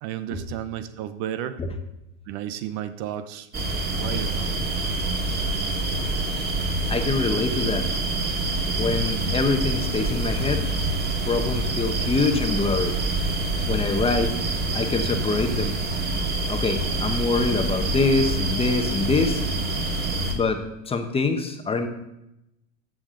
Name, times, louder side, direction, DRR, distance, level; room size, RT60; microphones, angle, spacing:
voice 1, 0.0-1.6 2.3-3.5 3.9-4.6, right 11 dB, 45° right, 12 dB, 0.8 m, -32 dB
sound 1, 3.5-20.3, right 2 dB, 25° right, 2.1 m, -26 dB
voice 2, 6.9-7.9 8.8-10.6 11.2-12.9 13.7-14.3 14.7-15.7 16.5-19.4 20.3-21.9, left 3 dB, 15° left, 6 dB, 1.0 m, -25 dB
14.0 x 7.5 x 3.8 m, 0.86 s
supercardioid pair, 125°, 39 cm